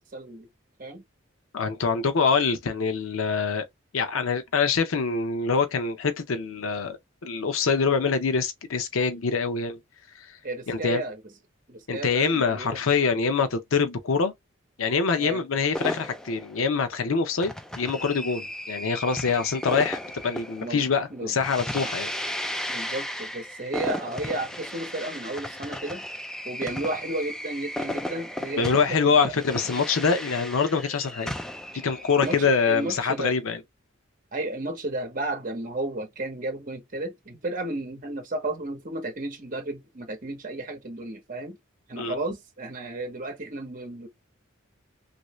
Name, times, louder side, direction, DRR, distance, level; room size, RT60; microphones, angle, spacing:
voice 1, 0.1-0.5 0.8-1.0 10.4-11.2 11.7-12.8 15.2-15.4 20.6-20.8 21.1-21.3 21.8-21.9 22.7-26.0 26.4-29.3 32.2-33.4 34.3-41.6 41.9-44.1, right 2 dB, 40° right, 0.9 m, -33 dB
voice 2, 1.5-3.7 3.9-7.0 7.2-9.8 10.7-11.0 11.9-14.3 14.8-22.1 28.5-31.3 31.7-33.6 42.0-42.1, left 5 dB, 85° left, 0.6 m, -25 dB
sound 1, 15.7-33.3, equal, 5° left, 0.3 m, -35 dB
3.1 x 2.6 x 3.0 m
head